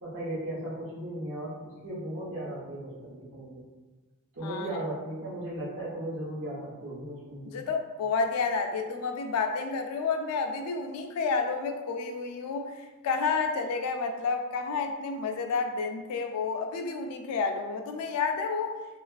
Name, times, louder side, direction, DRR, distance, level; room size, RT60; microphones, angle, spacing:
voice 1, 0.0-3.6 4.3-7.6, right 1 dB, 60° right, -7 dB, 1.0 m, -36 dB
voice 2, 7.5-18.8, left 4 dB, 85° left, 5 dB, 0.3 m, -30 dB
2.4 x 2.4 x 2.3 m, 1.2 s
head